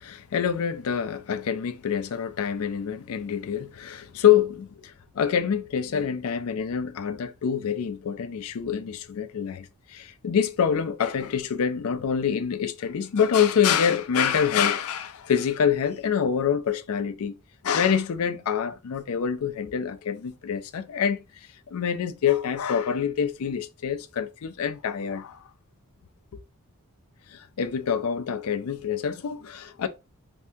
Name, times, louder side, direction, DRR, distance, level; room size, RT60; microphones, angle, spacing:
voice 1, 0.0-17.3 17.6-21.2 21.7-25.4 26.3-26.4 27.3-29.9, left 8 dB, 75° left, 0.4 m, -26 dB
3.3 x 2.6 x 2.6 m
head